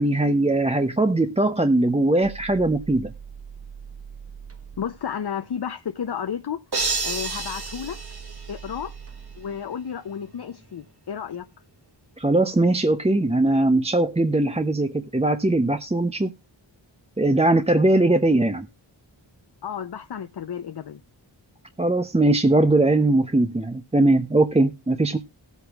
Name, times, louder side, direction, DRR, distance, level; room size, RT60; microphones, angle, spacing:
voice 1, 0.0-3.1 12.2-16.3 17.2-18.7 21.8-25.2, right 2 dB, 15° right, 0.6 m, -20 dB
sound 1, 1.8-5.1 6.8-10.9, right 7 dB, 30° right, 0.9 m, -43 dB
voice 2, 4.8-6.6 7.0-8.0 8.5-8.9 9.4-11.5 19.6-21.0, left 8 dB, 55° left, 0.6 m, -32 dB
sound 2, 6.7-9.0, right 3 dB, 55° right, 1.7 m, -30 dB
19.0 x 8.2 x 2.3 m
wide cardioid pair, 55°, 46 cm